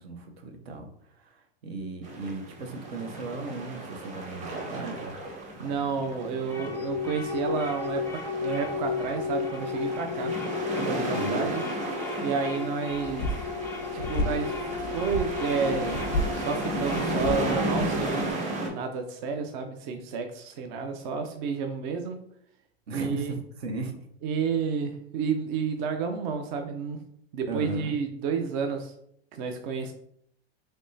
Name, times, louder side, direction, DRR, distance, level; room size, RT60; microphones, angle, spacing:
voice 1, 0.0-5.2 11.1-11.5 22.9-24.0 27.5-28.0, right 2 dB, 75° right, 4 dB, 0.8 m, -37 dB
sound 1, 2.0-18.7, right 2 dB, 25° right, 0.8 m, -34 dB
voice 2, 5.6-10.4 10.8-11.6 12.2-13.3 13.9-14.6 14.9-16.0 16.3-22.2 22.9-23.3 24.2-27.0 27.3-28.9 29.3-29.9, right 5 dB, 50° right, 5 dB, 0.5 m, -31 dB
sound 2, 5.8-17.7, left 5 dB, 5° left, 0.4 m, -34 dB
sound 3, 12.9-18.3, left 1 dB, 90° left, 0.5 m, -33 dB
3.5 x 3.1 x 2.6 m, 0.70 s
hypercardioid pair, 110°, 31 cm